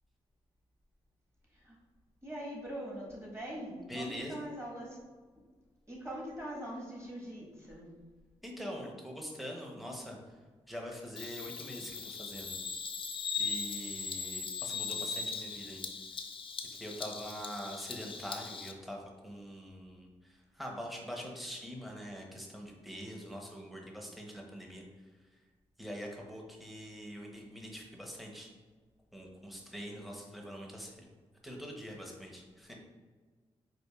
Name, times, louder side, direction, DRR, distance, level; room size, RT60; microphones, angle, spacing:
voice 1, 2.2-5.0 5.9-8.0, right 1 dB, 20° right, -3 dB, 1.3 m, -42 dB
voice 2, 3.9-4.4 8.4-10.4 10.7-12.6 13.4-15.8 16.7-24.8 25.8-28.5 29.1-31.1 31.4-32.7, equal, ahead, 0 dB, 0.8 m, -44 dB
Bird vocalization bird call bird song, 11.2-18.7, left 5 dB, 45° left, 0.4 m, -39 dB
4.5 x 2.5 x 2.3 m, 1.4 s
supercardioid pair, 50°, 13 cm